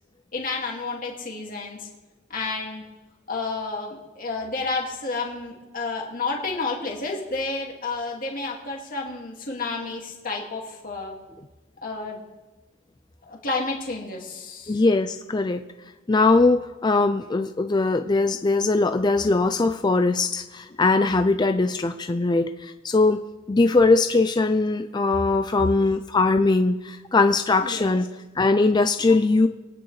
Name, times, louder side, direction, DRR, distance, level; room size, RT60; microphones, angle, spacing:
voice 1, 0.3-1.9 2.3-2.8 3.3-11.1 11.8-12.2 13.3-14.8 27.6-27.9 29.0-29.1, left 3 dB, 45° left, -1 dB, 2.2 m, -31 dB
voice 2, 14.7-15.6 16.1-23.2 23.5-28.1 28.4-29.5, left 3 dB, 25° left, 8 dB, 0.4 m, -21 dB
23.5 x 9.4 x 3.3 m, 1.2 s
head